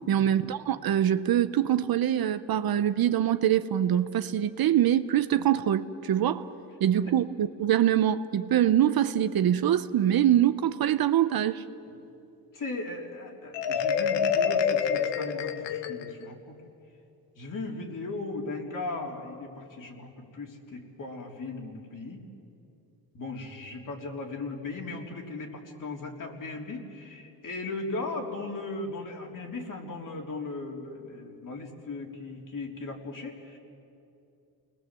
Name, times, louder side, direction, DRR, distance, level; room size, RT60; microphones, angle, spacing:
voice 1, 0.1-6.5 6.8-11.6, right 10 dB, 55° right, 1.0 m, -24 dB
voice 2, 12.5-16.6 17.4-22.2 23.1-33.6, left 3 dB, 45° left, 3.9 m, -37 dB
Marimba xylophone, 13.5-16.3, left 7 dB, 90° left, 1.2 m, -27 dB
28.5 x 21.0 x 7.7 m
cardioid pair, 85°, 42 cm